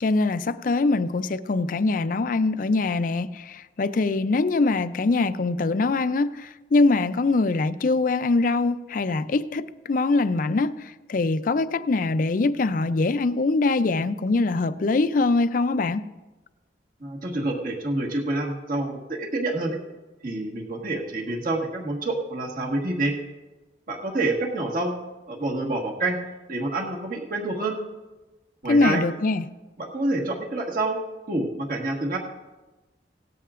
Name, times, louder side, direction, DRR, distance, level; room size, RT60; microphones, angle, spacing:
voice 1, 0.0-16.1 28.7-29.5, left 3 dB, 50° left, 0.4 m, -23 dB
voice 2, 17.0-19.8 20.2-23.2 23.9-24.9 25.3-26.2 26.5-27.8 28.6-29.0 29.8-31.0 31.3-32.2, right 2 dB, 50° right, 1.5 m, -27 dB
18.0 x 13.0 x 2.5 m
head